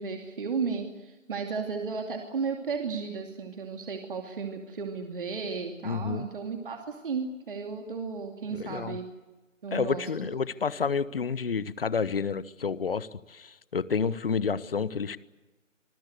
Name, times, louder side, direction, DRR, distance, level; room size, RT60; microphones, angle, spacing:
voice 1, 0.0-9.1 9.6-10.0, right 5 dB, 40° right, 4 dB, 2.7 m, -34 dB
voice 2, 5.8-6.3 8.5-9.0 9.7-15.2, left 5 dB, 45° left, 18 dB, 1.1 m, -30 dB
26.5 x 21.0 x 8.2 m, 1.2 s
figure-of-eight pair, 160°, 39 cm